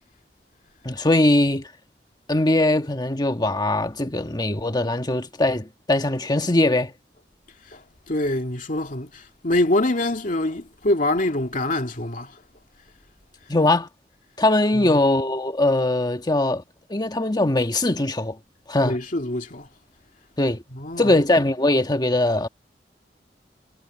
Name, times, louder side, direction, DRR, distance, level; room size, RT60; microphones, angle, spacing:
voice 1, 0.8-1.7 2.3-6.9 13.5-13.9 14.4-16.6 16.9-18.4 18.7-18.9 20.4-20.6 21.0-22.5, left 2 dB, 25° left, 1.5 m, -21 dB
voice 2, 7.7-12.4 14.7-15.0 18.8-19.7 20.7-21.2, left 1 dB, 50° left, 2.4 m, -25 dB
head